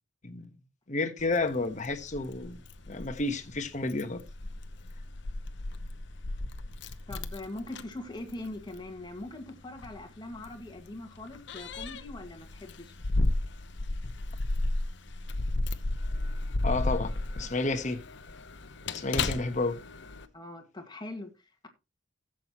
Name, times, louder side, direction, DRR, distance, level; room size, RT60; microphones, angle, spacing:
voice 1, 0.9-2.6 2.9-4.2 16.6-18.0 18.9-19.8, left 2 dB, 40° left, 1.2 m, -31 dB
Keys jangling, 1.2-20.3, left 2 dB, 65° left, 0.9 m, -34 dB
voice 2, 7.1-13.0 20.3-21.7, left 2 dB, 25° left, 1.9 m, -42 dB
15.5 x 7.7 x 3.0 m
head